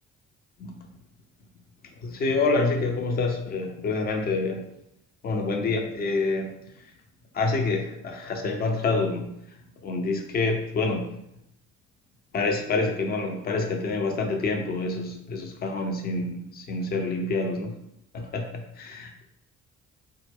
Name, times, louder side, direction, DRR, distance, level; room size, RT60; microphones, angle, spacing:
voice 1, 2.0-4.6 5.2-6.5 7.3-9.3 9.8-11.1 12.3-17.8 18.1-19.2, left 3 dB, 25° left, 3 dB, 0.4 m, -27 dB
2.1 x 2.1 x 3.4 m, 0.80 s
figure-of-eight pair, 45°, 39 cm